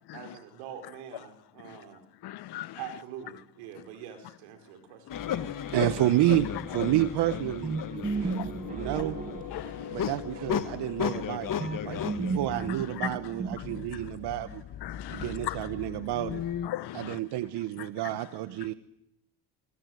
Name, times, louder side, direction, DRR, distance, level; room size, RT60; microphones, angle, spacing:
voice 1, 0.1-2.0 2.7-5.1, right 9 dB, 90° right, 4.6 m, -44 dB
voice 2, 2.2-2.8 5.4-5.5 8.0-8.5 9.5-10.1 11.1-11.2 11.9-12.0 13.0-13.1 14.8-15.6 16.6-17.2 17.8-17.9, left 15 dB, 65° left, 1.2 m, -38 dB
sound 1, 5.1-16.7, left 9 dB, 50° left, 1.7 m, -36 dB
voice 3, 5.7-7.8 8.2-8.4 8.7-9.2 9.9-11.5 11.8-14.6 15.1-16.4 16.9-18.7, right 14 dB, 70° right, 1.3 m, -29 dB
sound 2, 7.6-10.2 11.6-14.0, right 4 dB, 20° right, 2.0 m, -34 dB
23.0 x 22.5 x 9.4 m
supercardioid pair, 80°, 42 cm